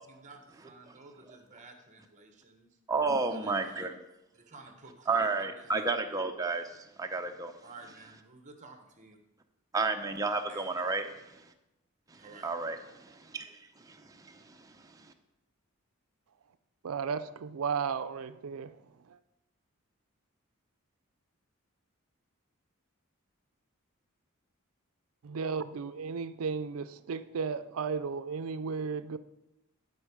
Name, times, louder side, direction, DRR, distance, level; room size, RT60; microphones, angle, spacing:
voice 1, 0.1-2.7 3.3-3.9 4.3-5.8 7.6-9.2 10.5-10.6 12.2-12.5, right 3 dB, 35° right, 1.1 m, -52 dB
voice 2, 2.9-3.9 5.1-7.5 9.7-11.4 12.1-15.1, right 3 dB, 15° right, 0.6 m, -32 dB
voice 3, 16.8-18.7 25.2-29.2, right 5 dB, 75° right, 0.4 m, -34 dB
11.0 x 4.5 x 4.9 m
head